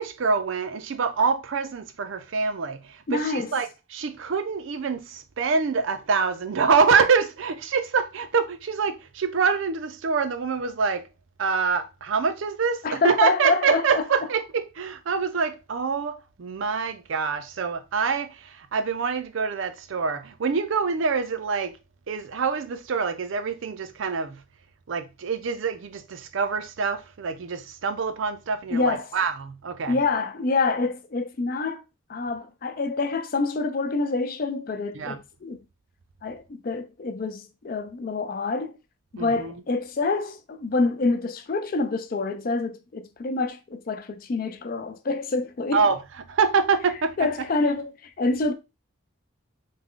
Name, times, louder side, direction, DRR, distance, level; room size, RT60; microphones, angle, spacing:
voice 1, 0.0-11.1 11.4-21.8 22.1-24.4 24.9-30.0 34.9-35.2 39.2-39.5 45.7-46.0 46.3-47.3, right 5 dB, 70° right, 0.4 m, -25 dB
voice 2, 3.1-3.5 12.8-14.0 28.7-29.1 29.9-31.8 32.1-35.6 36.2-38.7 39.1-45.8 47.2-47.9 48.2-48.5, left 3 dB, 45° left, 0.4 m, -26 dB
3.5 x 2.2 x 3.6 m
head